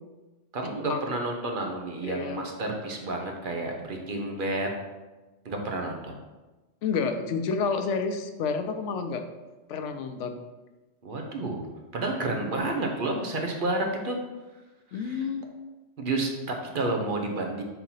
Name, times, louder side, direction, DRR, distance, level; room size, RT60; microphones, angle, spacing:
voice 1, 0.5-4.7 5.4-6.2 11.0-11.7 11.9-14.2 14.9-15.3 16.0-17.6, right 2 dB, 45° right, 2 dB, 1.0 m, -30 dB
voice 2, 2.0-2.4 6.8-9.2 9.7-10.3 14.9-15.4, left 5 dB, 75° left, 7 dB, 0.9 m, -29 dB
4.6 x 3.7 x 5.5 m, 1.2 s
omnidirectional pair, 1.3 m